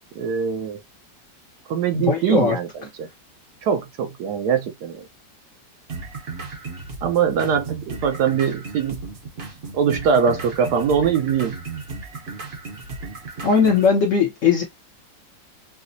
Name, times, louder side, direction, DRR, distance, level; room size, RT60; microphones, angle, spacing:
voice 1, 0.2-0.8 1.7-3.1 3.6-5.1 7.0-9.1 9.7-11.6, right 7 dB, 70° right, 1.1 m, -22 dB
voice 2, 1.9-2.6 13.4-14.6, left 5 dB, 60° left, 0.9 m, -18 dB
sound 1, 5.9-13.9, right 4 dB, 50° right, 0.8 m, -35 dB
4.8 x 2.0 x 2.6 m
omnidirectional pair, 2.0 m